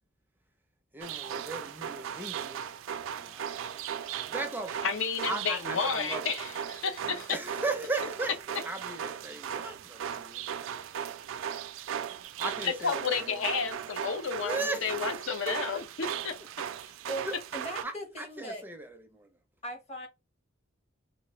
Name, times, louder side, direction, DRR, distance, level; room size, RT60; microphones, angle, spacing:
voice 1, 0.9-2.7 3.1-3.8 4.3-4.8 5.2-6.2 7.3-8.3 8.6-11.1 12.4-13.9 14.4-15.8 17.2-17.4 17.8-19.3, right 2 dB, 10° right, 0.4 m, -38 dB
sound 1, 1.0-17.8, right 9 dB, 70° right, 0.3 m, -37 dB
voice 2, 4.8-7.3 12.6-16.3, left 6 dB, 70° left, 0.6 m, -32 dB
voice 3, 17.1-18.6 19.6-20.1, right 1 dB, 30° left, 1.0 m, -39 dB
3.6 x 2.5 x 3.0 m
head